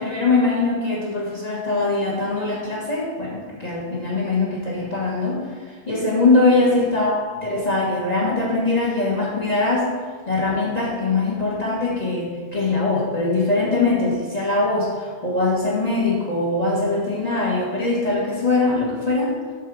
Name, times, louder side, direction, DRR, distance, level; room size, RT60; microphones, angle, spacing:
voice 1, 0.0-5.4 5.9-9.9 10.3-19.4, left 3 dB, 40° left, -5 dB, 1.6 m, -22 dB
8.0 x 3.8 x 6.2 m, 1.5 s
omnidirectional pair, 1.1 m